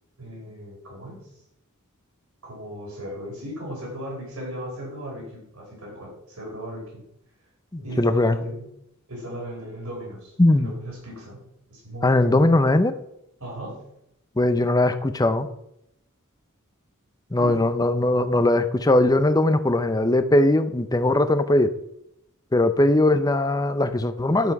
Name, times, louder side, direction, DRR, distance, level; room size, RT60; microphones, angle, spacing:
voice 1, 0.2-1.3 2.4-7.0 7.8-8.7 9.1-12.3 13.4-13.9 17.3-17.7, equal, 80° right, -2 dB, 5.1 m, -37 dB
voice 2, 7.7-8.4 10.4-10.7 12.0-12.9 14.4-15.5 17.3-21.7 22.5-24.5, left 1 dB, 15° left, 10 dB, 0.7 m, -20 dB
11.5 x 7.5 x 4.8 m, 0.78 s
head